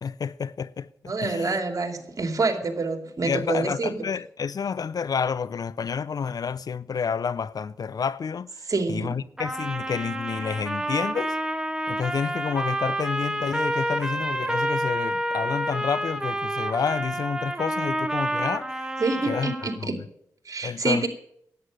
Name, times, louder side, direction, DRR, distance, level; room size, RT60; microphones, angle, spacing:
voice 1, 0.0-0.9 1.2-1.6 3.2-8.5 8.9-11.4 11.9-18.7 19.3-19.5 19.8-19.9 20.6-21.1, left 6 dB, 60° left, 0.5 m, -29 dB
voice 2, 1.0-4.0 8.7-9.2 19.0-20.0 20.5-21.1, right 3 dB, 50° right, 2.6 m, -27 dB
Trumpet, 9.4-19.8, right 1 dB, 10° right, 1.9 m, -29 dB
10.5 x 9.4 x 9.2 m
supercardioid pair, 40°, 7 cm